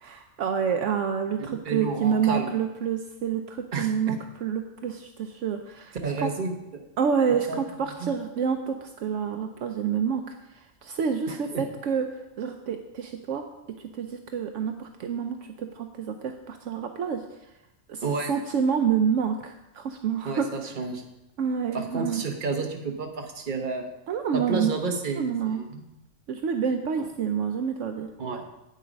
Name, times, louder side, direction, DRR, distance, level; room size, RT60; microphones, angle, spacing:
voice 1, 0.0-6.3 7.0-10.2 10.5-12.1 12.4-13.5 13.8-17.5 17.9-18.0 18.3-20.7 21.4-22.3 24.1-24.7 25.1-25.6 26.3-28.1, right 7 dB, 70° right, 6 dB, 0.9 m, -28 dB
voice 2, 1.4-2.5 3.7-4.2 6.0-6.9 7.5-7.6 8.0-8.1 11.3-11.6 18.0-18.3 20.2-21.0 21.7-23.9 24.3-25.9 28.2-28.4, right 4 dB, 40° right, 3 dB, 1.2 m, -31 dB
8.5 x 7.9 x 5.1 m, 0.93 s
omnidirectional pair, 1.4 m